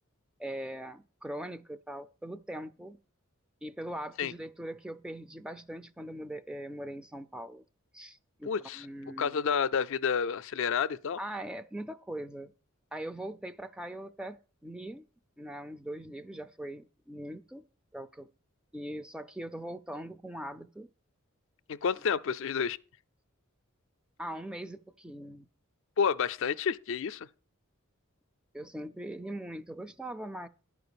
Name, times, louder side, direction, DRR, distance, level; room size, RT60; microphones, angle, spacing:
voice 1, 0.4-3.0 3.6-7.6 7.9-9.4 11.2-12.5 12.9-15.0 15.4-17.7 17.9-18.3 18.7-20.9 24.2-25.5 28.5-30.5, right 1 dB, 5° right, 0.4 m, -41 dB
voice 2, 8.5-8.8 9.2-11.2 21.7-22.8 26.0-27.3, left 6 dB, 65° left, 0.4 m, -29 dB
11.5 x 4.8 x 6.8 m
head